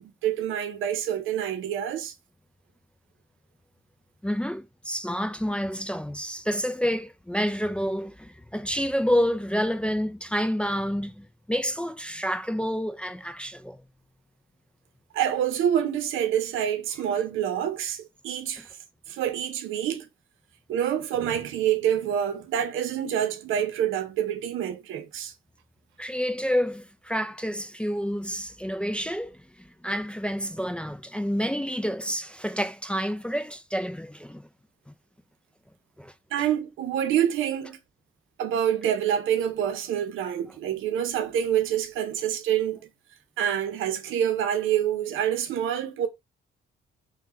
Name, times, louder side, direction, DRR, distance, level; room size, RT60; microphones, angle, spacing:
voice 1, 0.0-2.1 15.1-18.7 19.1-20.1 20.7-25.3 36.3-37.8 38.4-42.8 43.4-46.1, right 10 dB, 85° right, 0.8 m, -27 dB
voice 2, 4.2-13.8 26.0-34.5 36.0-36.1, equal, 5° left, 0.4 m, -29 dB
3.8 x 2.3 x 4.2 m
cardioid pair, 90°, 20 cm